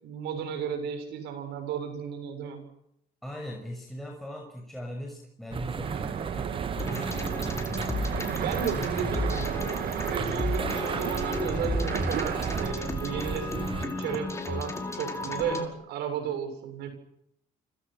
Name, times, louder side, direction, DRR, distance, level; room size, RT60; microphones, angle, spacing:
voice 1, 0.0-2.6 8.3-9.4 10.1-16.9, right 7 dB, 80° right, 7 dB, 7.2 m, -34 dB
voice 2, 3.2-6.5 6.8-7.7 8.8-9.0, equal, ahead, -1 dB, 6.6 m, -40 dB
sound 1, 5.5-13.9, right 6 dB, 30° right, 1.2 m, -35 dB
sound 2, 5.8-12.7, right 9 dB, 60° right, 2.6 m, -34 dB
sound 3, 6.8-15.7, left 3 dB, 15° left, 5.3 m, -34 dB
29.5 x 26.0 x 6.4 m, 0.76 s
cardioid pair, 110°, 17 cm